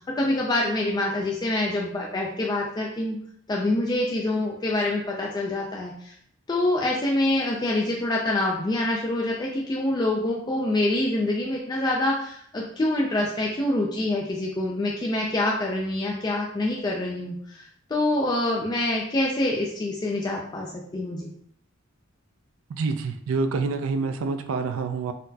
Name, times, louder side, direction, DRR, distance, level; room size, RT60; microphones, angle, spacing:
voice 1, 0.2-3.2 3.5-6.1 6.5-17.6 17.9-21.3, left 1 dB, 20° left, -3 dB, 0.3 m, -26 dB
voice 2, 22.7-25.1, right 4 dB, 75° right, 7 dB, 0.3 m, -27 dB
4.1 x 2.0 x 2.7 m, 0.65 s
head